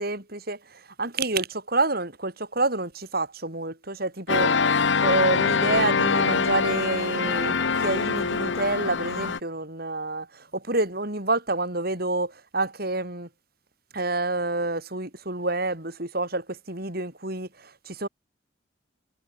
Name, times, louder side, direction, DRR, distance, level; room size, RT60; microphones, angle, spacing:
voice 1, 0.0-4.5 5.0-13.3 13.9-18.1, right 2 dB, 50° right, 8.0 m, -28 dB
sound 1, 4.3-9.4, left 5 dB, 70° left, 1.0 m, -24 dB
head